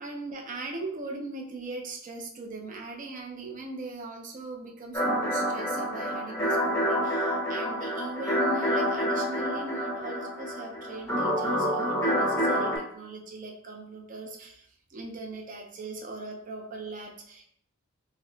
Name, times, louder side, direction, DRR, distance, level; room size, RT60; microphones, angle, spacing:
voice 1, 0.0-17.4, right 3 dB, 40° right, 1 dB, 0.5 m, -39 dB
sound 1, 4.9-12.8, equal, 15° left, 0.8 m, -28 dB
2.8 x 2.1 x 3.7 m, 0.66 s
head